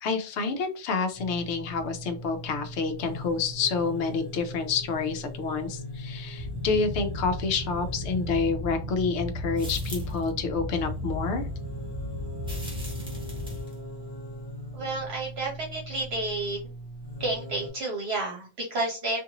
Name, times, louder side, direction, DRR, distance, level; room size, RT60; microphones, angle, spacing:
voice 1, 0.0-11.4, left 5 dB, 70° left, 7 dB, 0.9 m, -28 dB
sound 1, 1.2-17.7, right 1 dB, 35° left, 0.8 m, -40 dB
sound 2, 6.4-13.6, left 1 dB, 30° right, 0.9 m, -35 dB
sound 3, 9.6-10.3 12.4-13.8, equal, 5° right, 0.9 m, -43 dB
voice 2, 14.7-16.6 17.2-19.2, right 2 dB, 60° right, -2 dB, 1.0 m, -30 dB
2.6 x 2.5 x 2.8 m, 0.34 s
omnidirectional pair, 1.2 m